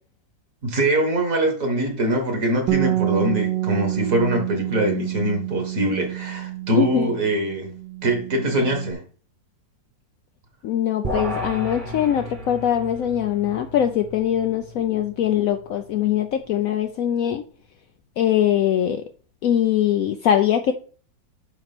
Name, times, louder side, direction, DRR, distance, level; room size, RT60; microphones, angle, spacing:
voice 1, 0.6-7.7 8.0-9.0, right 1 dB, 45° right, 3 dB, 1.8 m, -23 dB
Bass guitar, 2.7-8.9, right 15 dB, 75° right, 1.2 m, -27 dB
voice 2, 6.7-7.2 10.6-17.4 18.2-19.0 19.4-20.7, left 10 dB, 80° left, 6 dB, 0.7 m, -22 dB
sound 1, 11.0-16.6, equal, 30° right, 1.2 m, -34 dB
8.7 x 3.0 x 5.9 m, 0.41 s
omnidirectional pair, 2.1 m